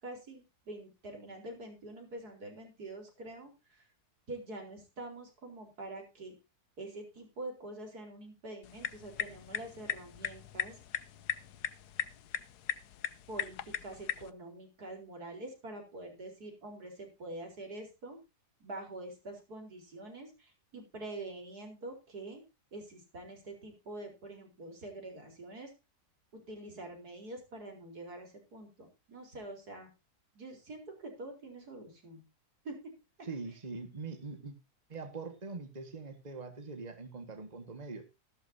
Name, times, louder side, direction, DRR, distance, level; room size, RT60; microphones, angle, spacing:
voice 1, 0.0-3.9 4.3-6.3 6.8-10.8 13.3-18.2 18.6-22.4 22.7-25.7 26.3-29.9 30.3-32.2 32.6-32.9, right 2 dB, 75° right, 2 dB, 4.7 m, -45 dB
sound 1, 8.6-14.3, left 10 dB, 80° left, 1.3 m, -39 dB
voice 2, 33.2-34.5 34.9-38.0, right 3 dB, 25° right, 7 dB, 1.7 m, -43 dB
14.5 x 12.5 x 2.7 m, 0.27 s
omnidirectional pair, 1.7 m